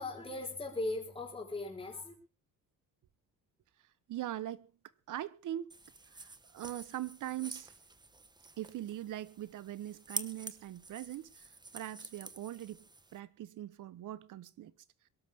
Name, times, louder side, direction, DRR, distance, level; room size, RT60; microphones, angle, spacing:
voice 1, 0.0-2.1, left 2 dB, 15° left, 4.7 m, -38 dB
voice 2, 4.1-4.7 5.1-5.7 6.1-7.7 8.6-12.8 13.1-14.7, right 13 dB, 70° right, 1.1 m, -41 dB
sound 1, 5.7-13.2, right 3 dB, 15° right, 1.1 m, -47 dB
22.5 x 12.5 x 3.6 m
cardioid pair, 120°, 32 cm